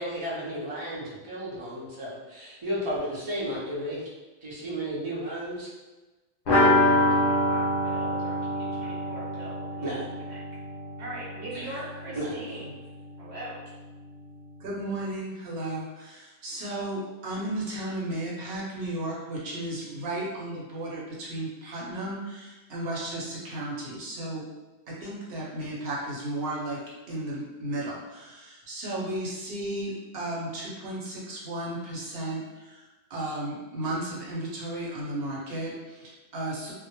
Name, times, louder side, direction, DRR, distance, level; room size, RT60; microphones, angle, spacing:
voice 1, 0.0-4.0 4.4-5.7 9.8-10.0 11.5-11.7 12.1-12.3, equal, 35° right, -6 dB, 0.5 m, -33 dB
sound 1, 6.5-12.1 12.3-12.4 12.7-12.8, left 1 dB, 65° left, 0.7 m, -25 dB
voice 2, 6.9-9.8 10.3-10.4 11.0-12.8 13.2-13.6, right 1 dB, 90° right, -6 dB, 1.1 m, -41 dB
voice 3, 14.6-24.5 24.9-26.8 27.1-36.7, right 1 dB, 65° right, -4 dB, 0.9 m, -34 dB
2.2 x 2.0 x 2.9 m, 1.2 s
omnidirectional pair, 1.1 m